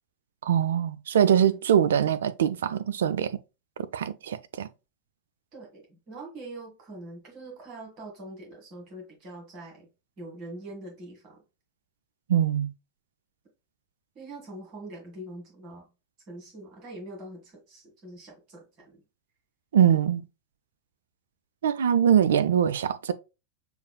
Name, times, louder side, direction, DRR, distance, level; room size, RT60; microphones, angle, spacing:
voice 1, 0.4-3.3 3.9-4.7 12.3-12.7 19.7-20.2 21.6-23.1, right 9 dB, 60° right, 0.3 m, -23 dB
voice 2, 5.5-9.9 10.2-11.4 14.2-15.9 16.3-19.0, right 2 dB, 40° right, 1.7 m, -43 dB
6.5 x 2.5 x 2.2 m
figure-of-eight pair, 90°, 0 cm